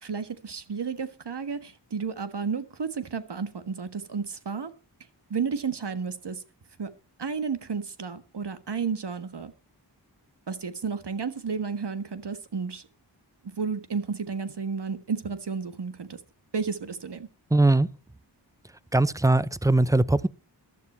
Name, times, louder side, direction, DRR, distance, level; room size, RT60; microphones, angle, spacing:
voice 1, 0.0-4.7 5.3-6.4 6.8-6.9 7.2-9.5 10.5-12.8 13.4-16.2 16.5-17.3, right 5 dB, 65° right, 1.7 m, -32 dB
voice 2, 17.5-17.9 18.9-20.3, right 2 dB, 10° right, 0.6 m, -21 dB
15.0 x 12.0 x 4.4 m
wide cardioid pair, 75°, 44 cm